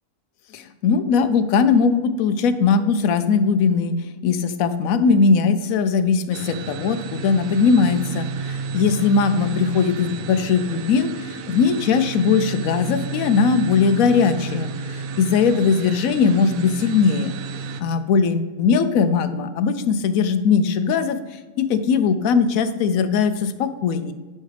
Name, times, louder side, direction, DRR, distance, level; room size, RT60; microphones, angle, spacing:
voice 1, 0.5-17.3 17.8-24.1, left 5 dB, 90° left, 10 dB, 1.1 m, -20 dB
sound 1, 6.3-17.8, right 5 dB, 80° right, 1.0 m, -32 dB
9.9 x 5.5 x 3.3 m, 1.3 s
omnidirectional pair, 1.4 m